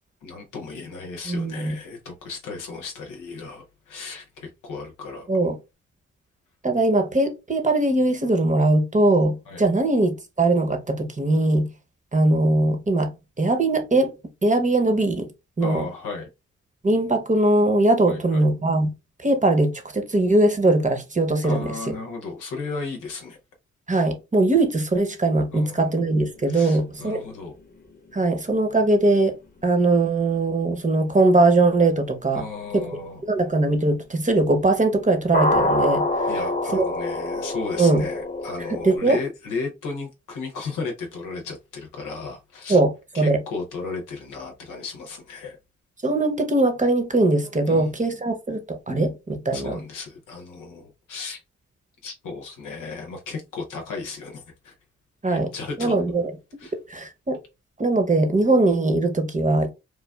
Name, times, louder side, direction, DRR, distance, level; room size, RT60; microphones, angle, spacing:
voice 1, 0.2-5.3 9.5-9.6 15.6-16.3 18.1-18.4 21.4-23.4 25.5-25.9 26.5-27.5 32.3-33.3 36.3-42.8 43.1-45.6 47.7-47.9 49.5-51.4 52.0-54.7 55.3-56.0 56.6-56.7, left 4 dB, 90° left, 0.7 m, -35 dB
voice 2, 1.3-1.8 5.3-5.6 6.6-11.7 12.1-13.1 13.4-14.1 14.4-15.3 15.6-15.9 16.8-18.9 19.2-22.0 23.9-27.2 28.1-29.3 29.6-32.4 32.7-32.9 33.3-36.3 36.7-36.8 37.8-38.1 38.7-39.2 42.7-43.4 46.0-49.8 55.2-55.5 55.8-56.3 56.9-57.4 57.8-59.7, right 2 dB, 25° right, 0.8 m, -21 dB
sound 1, 26.1-30.1 31.5-31.6 35.3-39.0, left 2 dB, 30° left, 0.9 m, -26 dB
3.2 x 2.3 x 2.3 m
supercardioid pair, 40°, 30 cm